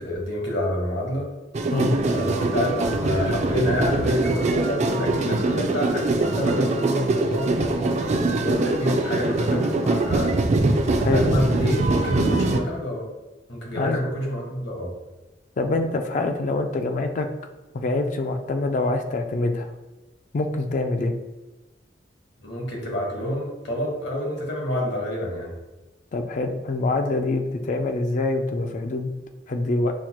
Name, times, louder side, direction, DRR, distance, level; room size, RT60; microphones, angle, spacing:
voice 1, 0.0-1.3 2.0-10.4 11.0-13.0 13.5-14.9 22.4-25.5, left 1 dB, 70° left, -2 dB, 1.2 m, -28 dB
sound 1, 1.5-12.6, right 2 dB, 40° right, 0.4 m, -23 dB
voice 2, 15.6-17.3 17.7-19.7 20.3-21.1 26.1-29.1 29.5-29.9, left 2 dB, 45° left, 6 dB, 0.4 m, -25 dB
6.2 x 2.1 x 2.9 m, 1.1 s
head